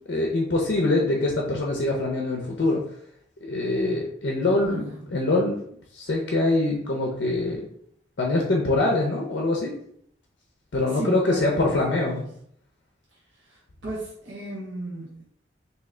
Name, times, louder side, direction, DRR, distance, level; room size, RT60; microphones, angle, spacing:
voice 1, 0.0-2.8 3.4-5.6 5.9-7.7 8.2-9.7 10.7-12.2, left 2 dB, 65° left, 0 dB, 0.5 m, -24 dB
voice 2, 4.4-5.1 10.8-12.4 13.1-15.2, right 1 dB, 70° right, -6 dB, 0.9 m, -36 dB
3.2 x 2.8 x 3.7 m, 0.68 s
head